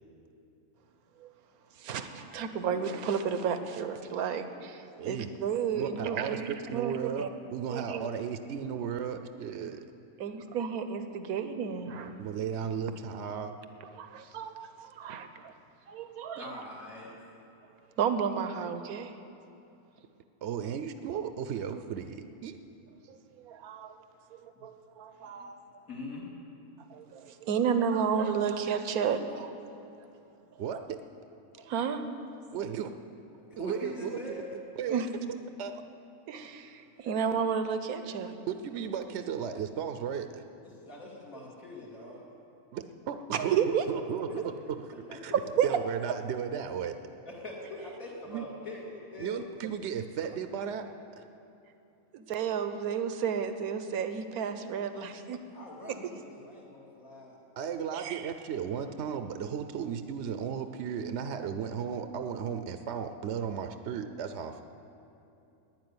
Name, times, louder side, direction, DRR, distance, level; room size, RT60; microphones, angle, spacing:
voice 1, 1.8-7.3 7.7-8.1 10.2-12.1 14.0-15.5 15.9-16.5 18.0-19.2 23.1-24.0 24.4-25.6 26.9-29.6 31.6-32.1 34.9-35.1 36.3-38.3 43.3-43.8 45.6-45.8 52.1-55.4 57.9-58.2, right 7 dB, 90° right, 9 dB, 1.3 m, -32 dB
voice 2, 5.0-5.3 5.8-6.4 6.7-9.8 12.2-13.5 20.4-22.6 30.6-31.0 32.5-32.9 33.6-34.4 34.8-35.0 35.6-35.8 38.5-40.4 42.7-44.5 45.1-45.3 45.6-47.0 48.3-48.4 49.2-50.9 51.2-51.3 57.6-64.6, right 7 dB, 60° right, 8 dB, 0.8 m, -35 dB
voice 3, 16.3-17.1 25.2-25.5 25.9-26.3 33.5-34.6 40.8-42.3 44.3-44.4 45.1-45.4 47.2-49.4 49.8-49.9 55.5-57.4, left 2 dB, 70° left, -5 dB, 2.8 m, -43 dB
12.0 x 9.7 x 9.6 m, 2.8 s
omnidirectional pair, 1.5 m